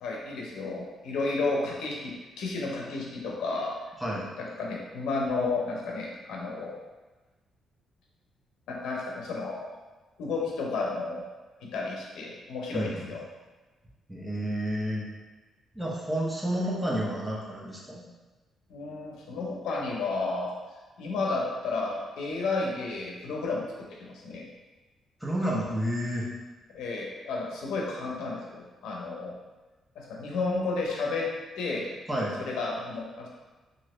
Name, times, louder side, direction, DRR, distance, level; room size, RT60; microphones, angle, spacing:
voice 1, 0.0-3.8 4.4-6.8 8.7-9.7 10.2-11.3 11.6-13.2 18.7-20.5 21.0-24.5 26.7-29.4 30.0-31.3 31.6-31.9 32.4-33.3, left 3 dB, 90° left, -1 dB, 0.6 m, -32 dB
voice 2, 12.7-13.1 14.1-15.0 15.7-18.0 25.2-26.3 32.1-32.4, equal, 5° right, -5 dB, 0.7 m, -30 dB
2.9 x 2.5 x 3.1 m, 1.2 s
cardioid pair, 105°, 0 cm